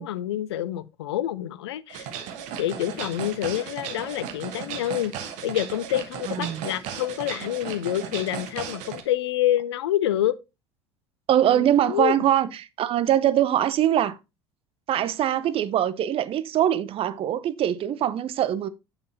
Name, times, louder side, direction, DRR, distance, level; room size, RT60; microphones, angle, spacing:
voice 1, 0.0-2.1 2.6-5.1 5.4-10.3 11.5-12.2, left 13 dB, 70° left, 0.5 m, -27 dB
sound 1, 1.9-9.0, right 8 dB, 55° right, 1.3 m, -36 dB
voice 2, 6.3-6.7 11.3-14.2 14.9-18.7, right 11 dB, 40° right, 0.6 m, -23 dB
8.2 x 6.8 x 2.8 m
figure-of-eight pair, 60°, 14 cm